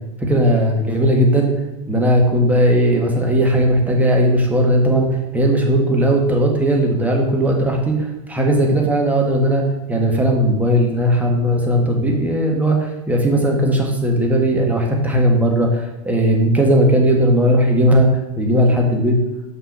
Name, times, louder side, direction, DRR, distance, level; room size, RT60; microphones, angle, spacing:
voice 1, 0.2-1.5 1.9-9.6 9.9-18.1 18.4-19.2, equal, 10° right, 1 dB, 1.6 m, -17 dB
6.1 x 5.8 x 4.8 m, 0.96 s
hypercardioid pair, 105°, 19 cm